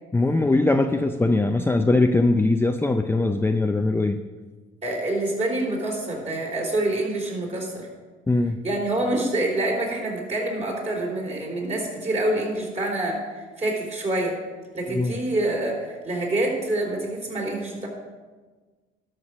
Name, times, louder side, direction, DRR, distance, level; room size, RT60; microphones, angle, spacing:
voice 1, 0.1-4.2 8.3-8.6 14.9-15.1, left 2 dB, 10° left, 5 dB, 0.5 m, -21 dB
voice 2, 4.8-7.9 8.6-14.4 14.7-17.9, right 1 dB, 35° right, -1 dB, 4.2 m, -26 dB
12.0 x 6.6 x 6.1 m, 1.3 s
cardioid pair, 90°, 20 cm